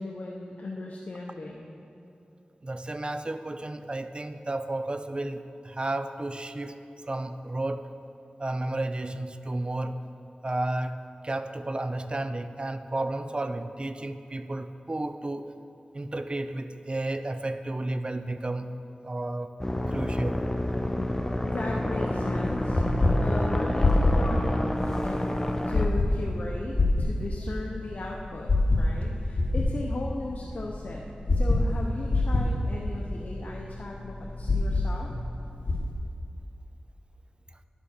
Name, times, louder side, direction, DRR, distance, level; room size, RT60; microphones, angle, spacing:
voice 1, 0.0-1.7 20.8-21.1 21.5-22.8 23.2-25.2 25.7-31.0 31.3-35.1, left 2 dB, 65° left, -1 dB, 0.7 m, -37 dB
voice 2, 2.6-7.9 8.4-10.0 10.4-15.5 15.9-18.8 19.0-19.5 19.9-20.4, right 2 dB, 35° right, 10 dB, 0.5 m, -32 dB
sound 1, 19.6-25.9, left 1 dB, 20° left, 0.7 m, -29 dB
sound 2, 21.9-35.9, left 2 dB, 50° left, 1.1 m, -27 dB
10.5 x 7.1 x 4.4 m, 2.9 s
cardioid pair, 50°, 3 cm